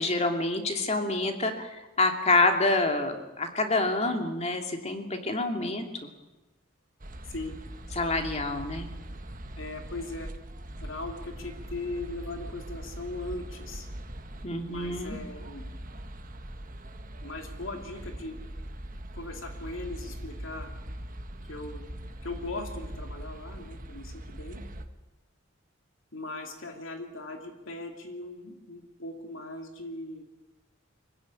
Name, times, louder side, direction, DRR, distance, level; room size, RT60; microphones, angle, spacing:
voice 1, 0.0-6.1 7.9-8.9 14.4-15.2, left 2 dB, 30° left, 5 dB, 2.6 m, -27 dB
sound 1, 7.0-24.8, right 1 dB, 40° right, 1.5 m, -41 dB
voice 2, 9.6-10.3 10.8-13.9 14.7-15.6 17.2-18.4 19.1-20.7 21.5-21.8 22.2-24.6 26.1-30.2, left 2 dB, 65° left, 4 dB, 2.7 m, -39 dB
25.0 x 16.0 x 9.7 m, 1.1 s
head